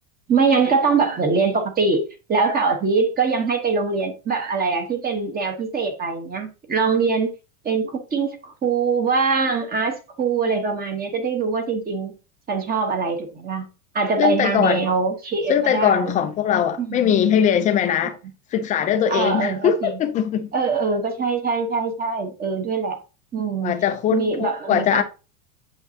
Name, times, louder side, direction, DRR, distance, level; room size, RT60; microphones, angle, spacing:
voice 1, 0.3-2.0 2.3-7.3 7.6-12.1 12.5-13.7 13.9-16.1 16.8-17.2 19.1-19.9 20.5-23.0 23.3-23.7 24.1-25.0, right 4 dB, 20° right, 1.1 m, -23 dB
voice 2, 14.2-14.8 15.5-18.2 18.5-20.5 23.6-25.0, left 9 dB, 15° left, 0.4 m, -21 dB
8.1 x 5.6 x 2.8 m
supercardioid pair, 140°, 47 cm